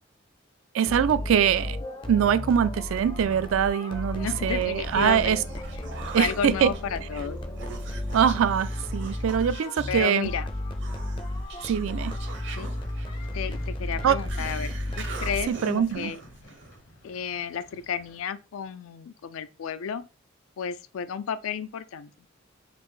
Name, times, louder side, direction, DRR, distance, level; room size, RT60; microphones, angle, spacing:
voice 1, 0.7-1.8 2.1-5.4 6.1-6.7 8.1-10.3 11.7-12.2 14.0-14.1 15.5-16.1, right 8 dB, 75° right, 0.3 m, -23 dB
sound 1, 0.9-15.8, left 1 dB, 25° left, 0.4 m, -34 dB
voice 2, 4.2-5.4 6.2-7.4 9.9-10.5 12.5-12.7 13.3-16.2 17.0-20.0 20.6-22.1, left 7 dB, 85° left, 0.4 m, -32 dB
Human voice, 4.6-16.8, right 4 dB, 60° right, 0.8 m, -43 dB
sound 2, 12.6-18.2, left 1 dB, 70° left, 1.0 m, -50 dB
4.2 x 2.6 x 3.1 m
head